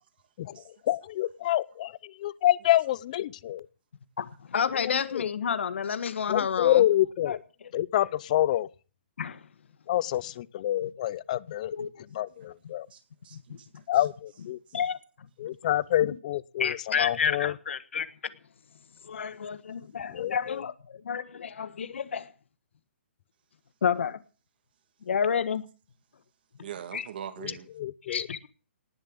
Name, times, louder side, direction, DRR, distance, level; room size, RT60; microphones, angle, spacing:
voice 1, 0.4-3.7 4.7-5.3 6.3-7.4 7.7-8.7 9.9-11.7 12.1-12.9 13.9-14.6 15.4-17.5 20.1-20.6 27.4-27.5 27.8-28.3, left 13 dB, 35° left, 0.7 m, -27 dB
voice 2, 4.5-6.9 7.3-7.4 9.2-9.4 11.7-11.9 14.7-15.0 16.6-18.1 19.1-20.7 21.0-22.3 23.8-24.2 25.1-25.6 26.9-27.0 28.1-28.5, left 7 dB, 75° left, 1.5 m, -29 dB
voice 3, 12.9-13.7 14.7-14.8 26.6-27.7, right 9 dB, 50° right, 2.5 m, -42 dB
19.0 x 7.4 x 8.7 m
hypercardioid pair, 165°, 7 cm